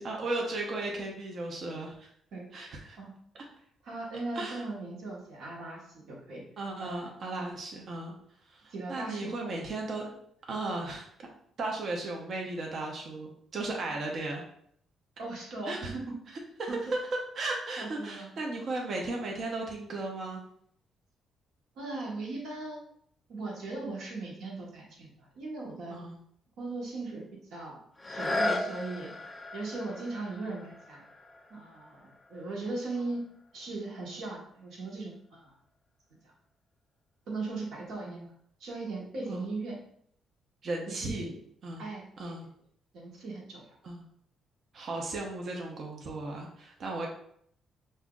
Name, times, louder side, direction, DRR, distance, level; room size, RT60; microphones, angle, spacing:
voice 1, 0.0-2.1 2.5-3.0 3.3-3.4 4.3-4.6 6.6-8.1 8.5-10.1 10.5-11.3 11.6-14.4 15.7-15.9 16.6-17.0 17.4-20.4 25.9-26.2 38.0-38.3 39.3-39.5 40.6-41.3 41.6-41.8 42.2-42.5 43.8-44.0 44.7-47.1, right 2 dB, 55° right, 0 dB, 0.8 m, -36 dB
voice 2, 3.8-6.4 6.8-7.1 8.7-9.5 15.2-16.2 16.7-16.8 17.8-18.3 21.7-22.9 23.3-26.0 26.6-27.2 27.5-27.8 28.1-29.1 29.5-31.0 31.5-33.2 33.5-35.5 37.3-38.3 38.6-39.8 40.9-41.4 41.8-42.3 42.9-43.7, right 3 dB, 75° right, -2 dB, 1.3 m, -38 dB
sound 1, 28.0-33.6 34.2-34.3, left 2 dB, 20° left, 0.5 m, -37 dB
5.6 x 2.7 x 2.4 m, 0.67 s
cardioid pair, 90°, 0 cm